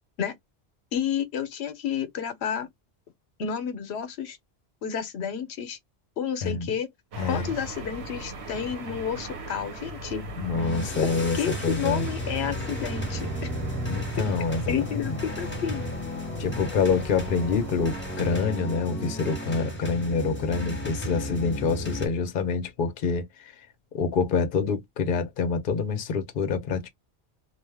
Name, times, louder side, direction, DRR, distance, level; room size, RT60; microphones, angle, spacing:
voice 1, 0.9-2.7 3.4-4.4 4.8-5.8 6.2-6.9 7.2-10.2 11.0-13.5 14.7-15.8, left 8 dB, 85° left, 0.9 m, -30 dB
voice 2, 6.4-6.7 7.2-7.5 10.4-11.4 11.6-12.1 13.9-15.2 16.4-23.2 23.9-26.9, left 5 dB, 60° left, 0.8 m, -26 dB
sound 1, 7.1-18.4, equal, 90° right, 1.1 m, -38 dB
sound 2, 10.5-22.1, equal, 10° left, 0.8 m, -34 dB
2.4 x 2.3 x 3.3 m
omnidirectional pair, 1.1 m